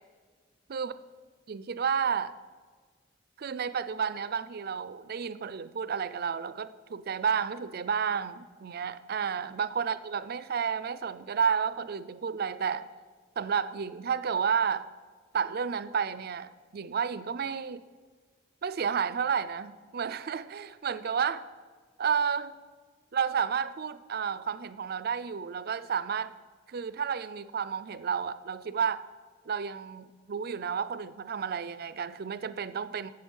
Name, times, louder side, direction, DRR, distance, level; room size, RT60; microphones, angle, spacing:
voice 1, 1.5-2.3 3.4-12.9 13.4-14.9 15.3-17.8 18.6-21.4 22.0-22.5 23.1-26.3 26.7-29.0 29.5-33.1, right 6 dB, 50° right, 15 dB, 0.4 m, -31 dB
17.5 x 6.8 x 5.5 m, 1.5 s
head